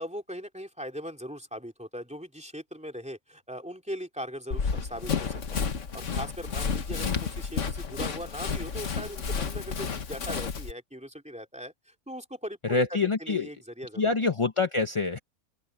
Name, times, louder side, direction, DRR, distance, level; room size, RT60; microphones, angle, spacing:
voice 1, 0.0-5.7 5.9-14.1, equal, 5° right, 3.0 m, -40 dB
Run, 4.5-10.7, left 5 dB, 55° left, 1.6 m, -31 dB
voice 2, 12.6-13.5 13.9-15.2, left 4 dB, 30° left, 0.6 m, -26 dB
open air
omnidirectional pair, 1.6 m